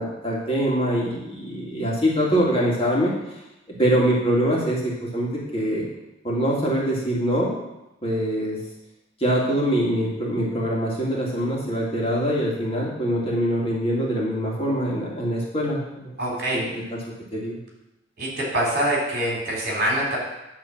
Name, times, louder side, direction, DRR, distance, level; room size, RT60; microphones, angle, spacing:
voice 1, 0.0-3.1 3.8-5.9 6.2-7.5 8.0-8.6 9.2-16.2 16.5-16.8 17.3-17.6, equal, 30° left, -5 dB, 2.2 m, -24 dB
voice 2, 16.2-16.6 18.2-20.2, right 1 dB, 55° right, -3 dB, 3.4 m, -24 dB
10.5 x 3.7 x 7.2 m, 0.93 s
head